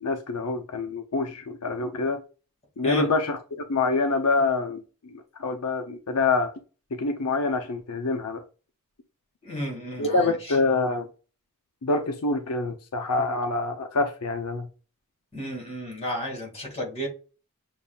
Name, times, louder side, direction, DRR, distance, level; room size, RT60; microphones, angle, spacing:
voice 1, 0.0-2.2 2.8-4.8 5.1-6.5 7.0-8.4 10.0-11.1 11.8-14.7, left 3 dB, 90° left, 0.7 m, -26 dB
voice 2, 9.4-10.6 15.3-17.1, equal, 30° left, 2.3 m, -33 dB
6.8 x 2.7 x 2.4 m
head